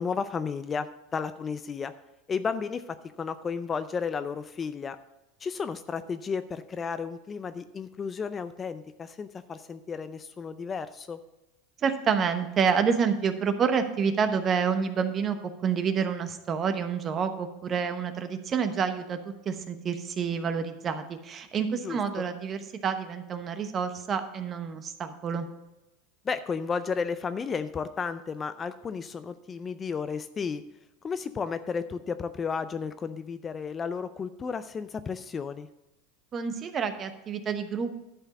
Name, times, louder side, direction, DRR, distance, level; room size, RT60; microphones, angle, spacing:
voice 1, 0.0-1.9 2.3-5.0 5.4-11.2 21.8-22.0 26.2-30.6 31.0-35.7, left 5 dB, 25° left, 12 dB, 0.4 m, -33 dB
voice 2, 11.8-19.2 19.4-25.5 36.3-37.9, right 6 dB, 30° right, 9 dB, 1.0 m, -28 dB
11.5 x 4.5 x 7.0 m, 0.97 s
supercardioid pair, 120°, 0 cm